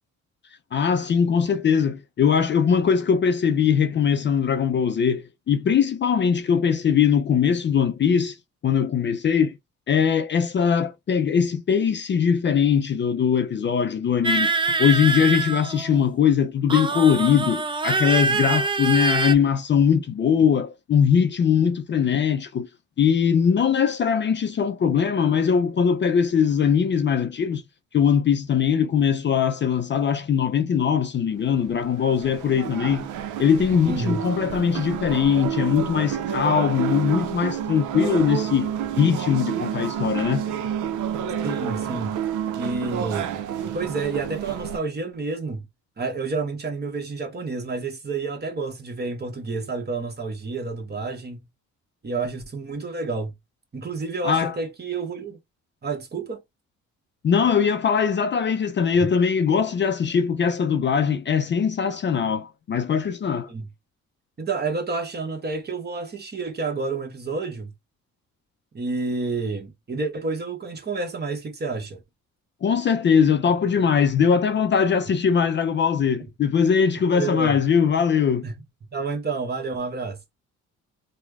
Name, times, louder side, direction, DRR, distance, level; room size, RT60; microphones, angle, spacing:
voice 1, 0.7-8.4 8.6-9.6 9.9-14.5 14.8-22.7 23.0-27.6 27.9-33.1 33.4-38.7 39.0-40.4 54.2-54.6 57.2-63.5 72.6-78.4, left 7 dB, 40° left, 0.5 m, -21 dB
sound 1, 14.2-16.1 16.7-19.3, right 4 dB, 15° right, 0.4 m, -24 dB
sound 2, 31.7-44.8, right 9 dB, 80° right, 0.6 m, -29 dB
voice 2, 33.9-34.2 41.4-42.2 42.6-43.4 43.7-45.7 46.0-51.4 52.0-53.3 53.7-55.4 55.8-56.4 63.5-63.7 64.4-67.7 68.7-72.0 77.1-77.6 78.4-78.6 78.9-80.2, right 4 dB, 35° right, 1.1 m, -29 dB
3.2 x 2.2 x 3.4 m
cardioid pair, 90°, 30 cm